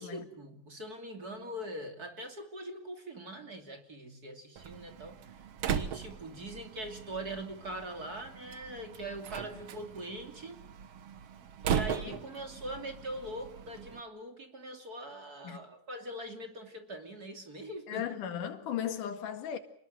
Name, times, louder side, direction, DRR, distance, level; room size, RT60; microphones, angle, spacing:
voice 1, 0.0-5.2 5.7-10.6 11.6-18.0, right 1 dB, 30° right, 3.0 m, -42 dB
Slam, 4.6-14.0, right 8 dB, 60° right, 2.1 m, -38 dB
voice 2, 17.9-19.6, left 9 dB, 85° left, 3.5 m, -36 dB
29.0 x 20.0 x 7.7 m
omnidirectional pair, 3.5 m